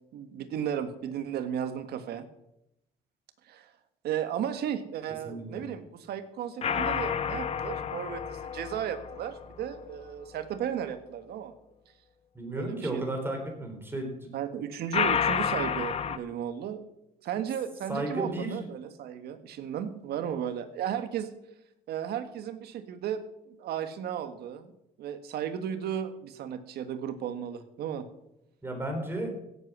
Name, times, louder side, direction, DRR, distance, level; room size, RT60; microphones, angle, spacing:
voice 1, 0.1-2.3 3.5-3.7 4.0-11.5 12.5-13.0 14.3-16.8 17.2-21.3 21.9-23.2 23.5-24.7 25.0-28.1, right 9 dB, 70° right, 9 dB, 1.6 m, -34 dB
voice 2, 5.2-5.6 12.3-14.3 17.9-18.7 28.6-29.3, right 1 dB, 15° right, 3 dB, 4.2 m, -33 dB
sound 1, 6.6-9.9 14.9-16.2, left 7 dB, 35° left, 1.0 m, -30 dB
16.5 x 8.3 x 6.3 m, 0.85 s
cardioid pair, 110°, 17 cm